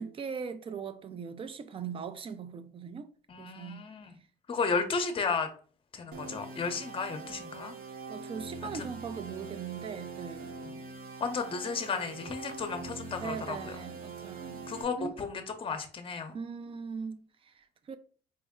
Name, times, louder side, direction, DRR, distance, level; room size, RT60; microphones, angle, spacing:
voice 1, 0.0-3.9 8.1-10.6 13.2-14.7 15.0-15.2 16.3-18.0, right 6 dB, 35° right, 0.4 m, -40 dB
voice 2, 3.3-4.1 4.5-5.5 5.9-7.7 8.7-8.8 10.6-10.7 11.2-13.7 14.7-16.4, left 5 dB, 30° left, 0.7 m, -33 dB
sound 1, 6.1-14.8, right 4 dB, 60° right, 0.7 m, -43 dB
4.3 x 2.1 x 3.5 m
cardioid pair, 110°, 17 cm